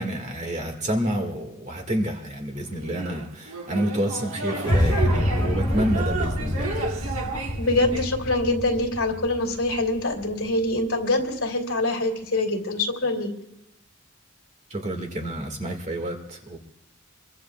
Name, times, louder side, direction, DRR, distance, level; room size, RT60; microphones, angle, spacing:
voice 1, 0.0-6.8 14.7-16.6, right 1 dB, 35° right, 4 dB, 1.9 m, -29 dB
sound 1, 2.8-8.1, right 3 dB, 85° right, 1.6 m, -32 dB
sound 2, 4.7-10.8, left 1 dB, 20° left, 0.7 m, -27 dB
voice 2, 7.6-13.3, left 2 dB, 70° left, 2 dB, 2.9 m, -24 dB
25.5 x 23.0 x 2.4 m, 0.84 s
head